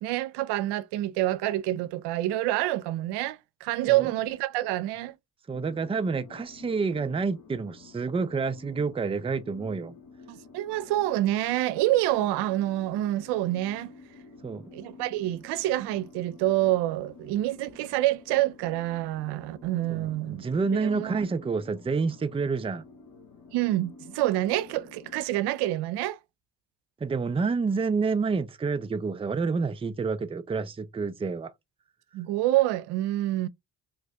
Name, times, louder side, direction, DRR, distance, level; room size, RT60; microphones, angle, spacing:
voice 1, 0.0-5.1 10.3-13.9 14.7-20.4 20.8-21.2 23.5-26.2 32.1-33.5, right 15 dB, 75° right, 0.5 m, -27 dB
sound 1, 5.5-25.2, left 4 dB, 60° left, 1.2 m, -50 dB
voice 2, 5.5-9.9 14.4-14.6 19.9-22.8 27.0-31.5, right 4 dB, 15° right, 0.4 m, -28 dB
2.9 x 2.5 x 3.2 m
hypercardioid pair, 50°, 40 cm